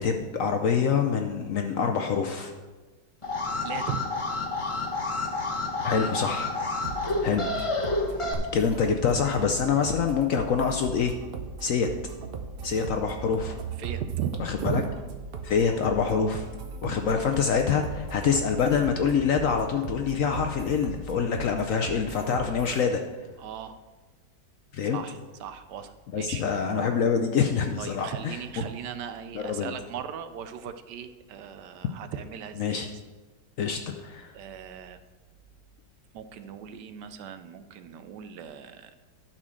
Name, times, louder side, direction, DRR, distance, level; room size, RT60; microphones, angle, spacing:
voice 1, 0.0-2.5 5.8-6.5 7.2-7.5 8.5-11.1 11.6-11.9 12.6-13.6 14.4-14.8 15.4-16.5 16.8-23.0 24.7-25.0 26.1-28.4 29.3-29.7 32.6-32.9 33.6-34.3, left 6 dB, 65° left, 5 dB, 0.8 m, -25 dB
Alarm, 3.2-8.3, left 2 dB, 25° left, 0.8 m, -29 dB
voice 2, 3.6-4.0 7.5-7.7 13.8-14.8 17.7-17.8 23.4-23.8 24.9-26.4 27.8-32.8 34.3-35.0 36.1-38.9, right 8 dB, 75° right, 10 dB, 1.2 m, -37 dB
sound 1, 6.8-22.8, right 5 dB, 50° right, 0.7 m, -38 dB
11.5 x 4.4 x 6.3 m, 1.3 s
omnidirectional pair, 1.9 m